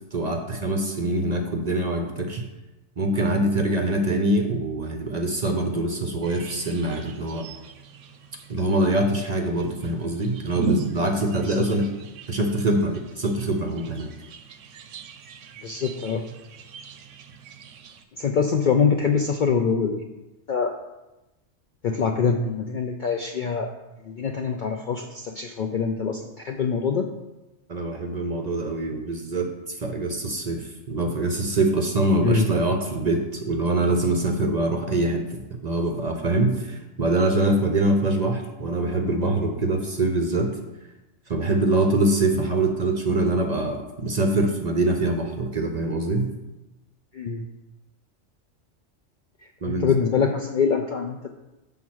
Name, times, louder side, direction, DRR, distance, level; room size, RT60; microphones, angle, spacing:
voice 1, 0.1-2.4 3.0-7.5 8.5-11.9 12.3-14.1 27.7-40.5 41.3-46.3 49.6-49.9, right 2 dB, 45° right, 3 dB, 0.6 m, -24 dB
sound 1, 6.2-18.0, right 4 dB, 85° right, 1.0 m, -37 dB
voice 2, 15.6-16.3 18.2-20.1 20.5-20.7 21.8-23.7 24.1-27.1 32.2-32.5 47.1-47.5 49.6-51.3, left 5 dB, 60° left, 4 dB, 0.5 m, -24 dB
7.3 x 3.6 x 6.2 m, 1.0 s
omnidirectional pair, 1.3 m